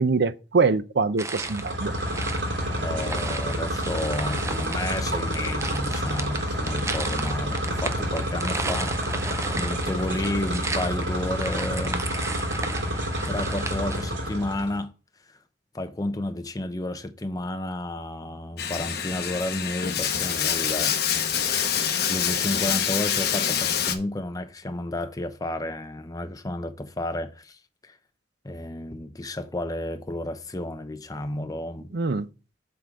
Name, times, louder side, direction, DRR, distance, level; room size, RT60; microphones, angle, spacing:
voice 1, 0.0-1.9 31.9-32.3, right 4 dB, 65° right, 0.6 m, -23 dB
sound 1, 1.2-14.2, right 3 dB, 15° right, 0.5 m, -35 dB
sound 2, 1.4-14.8, equal, 85° right, 3.1 m, -29 dB
voice 2, 2.8-8.9 9.5-12.1 13.3-14.9 15.7-21.0 21.9-27.6 27.9-28.0 28.4-31.9, left 1 dB, 20° left, 0.7 m, -31 dB
Bathtub (filling or washing), 18.6-24.0, left 8 dB, 65° left, 1.0 m, -26 dB
7.7 x 3.9 x 6.2 m
head